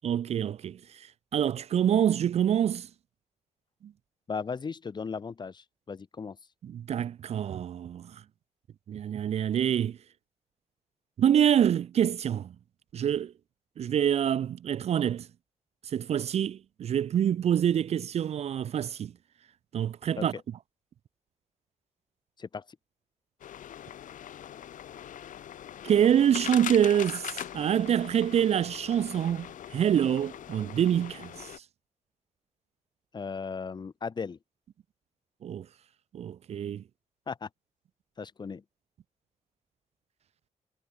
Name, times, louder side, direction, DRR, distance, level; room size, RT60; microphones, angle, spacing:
voice 1, 0.0-0.8 1.3-2.9 6.6-8.1 8.9-10.0 11.2-12.5 12.9-13.3 13.8-15.3 15.9-19.1 19.7-20.3 25.8-31.5 35.4-35.7 36.1-36.8, right 9 dB, 55° right, 0.5 m, -26 dB
voice 2, 4.3-6.4 20.2-20.4 22.4-22.6 33.1-34.4 37.3-37.5 38.2-38.6, left 5 dB, 35° left, 1.6 m, -36 dB
sound 1, 23.4-31.6, left 10 dB, 85° left, 6.0 m, -41 dB
wide cardioid pair, 145°, 13 cm